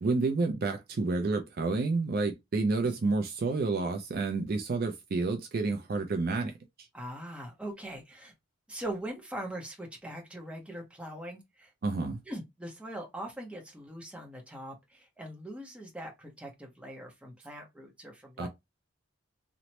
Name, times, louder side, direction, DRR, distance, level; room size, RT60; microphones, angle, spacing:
voice 1, 0.0-6.5 11.8-12.2 18.4-18.5, right 3 dB, 45° right, 0.4 m, -29 dB
voice 2, 6.9-8.3 8.7-11.7 12.3-18.5, right 1 dB, 5° right, 0.7 m, -41 dB
3.0 x 2.0 x 2.8 m
head